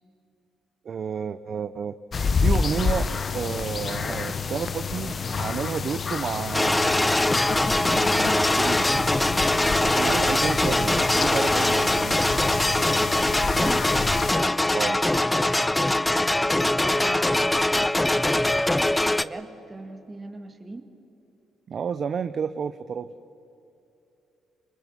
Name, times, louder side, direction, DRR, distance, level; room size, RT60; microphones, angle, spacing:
voice 1, 0.8-2.0 2.4-7.2 7.9-8.9 9.8-12.2 14.7-15.0 21.7-23.1, right 6 dB, 50° right, 11 dB, 0.6 m, -31 dB
sound 1, 2.1-14.3, left 5 dB, 40° left, 0.8 m, -28 dB
sound 2, 6.5-19.2, left 1 dB, 10° left, 0.5 m, -22 dB
voice 2, 13.3-13.9 16.9-17.9 19.2-20.9, right 2 dB, 25° right, 5 dB, 2.1 m, -39 dB
27.0 x 20.5 x 5.7 m, 2.8 s
cardioid pair, 90°, 0 cm